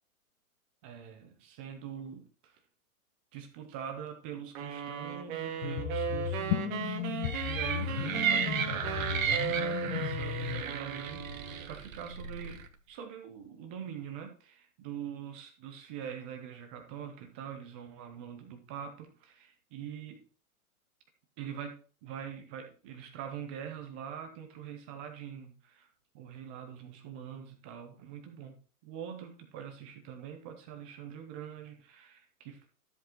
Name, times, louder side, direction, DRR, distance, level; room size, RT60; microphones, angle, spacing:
voice 1, 0.8-2.6 3.3-7.0 7.4-12.6 12.9-20.3 21.4-21.8 22.0-25.9 26.1-28.6 28.8-32.7, right 8 dB, 10° right, 5 dB, 0.3 m, -43 dB
sound 1, 4.6-11.7, right 8 dB, 35° right, 1.7 m, -37 dB
sound 2, 5.6-10.6, left 13 dB, 35° left, 1.2 m, -35 dB
sound 3, 7.2-12.7, right 7 dB, 60° right, 1.5 m, -34 dB
13.0 x 7.6 x 3.0 m, 0.39 s
hypercardioid pair, 125°, 45 cm